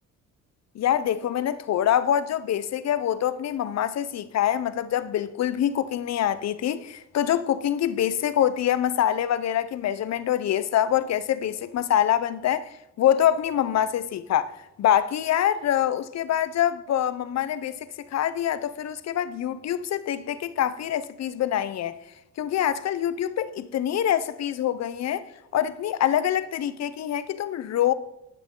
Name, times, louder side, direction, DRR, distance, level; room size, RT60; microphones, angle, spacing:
voice 1, 0.7-12.7 13.0-14.5 14.8-22.0 22.4-25.3 25.5-27.9, left 10 dB, 60° left, 0.7 m, -25 dB
12.5 x 9.6 x 3.8 m
cardioid pair, 90°, 30 cm